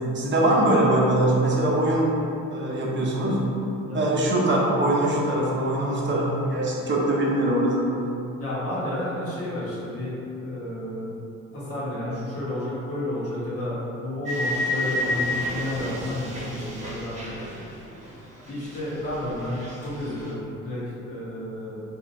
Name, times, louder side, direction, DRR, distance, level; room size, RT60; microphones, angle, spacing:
voice 1, 0.1-2.1 2.5-3.4 3.9-8.0, right 1 dB, 40° right, -4 dB, 0.8 m, -22 dB
voice 2, 3.8-4.3 8.4-11.1 11.5-17.6 18.4-21.8, left 1 dB, 50° left, -8 dB, 1.4 m, -31 dB
sound 1, 14.2-18.2 18.4-20.3, left 1 dB, 25° right, 1.1 m, -31 dB
2.8 x 2.5 x 4.2 m, 2.8 s
cardioid pair, 90°, 30 cm